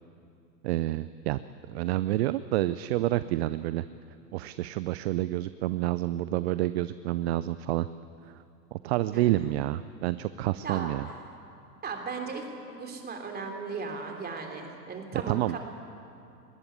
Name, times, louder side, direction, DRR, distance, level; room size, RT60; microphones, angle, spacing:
voice 1, 0.6-1.4 1.7-3.8 4.3-7.9 8.3-8.4 8.7-11.1 15.3-15.6, right 15 dB, 40° right, 15 dB, 0.5 m, -28 dB
voice 2, 11.8-12.4 12.7-15.6, right 4 dB, 20° right, 3 dB, 3.3 m, -36 dB
20.5 x 16.0 x 10.0 m, 2.7 s
hypercardioid pair, 110°, 50 cm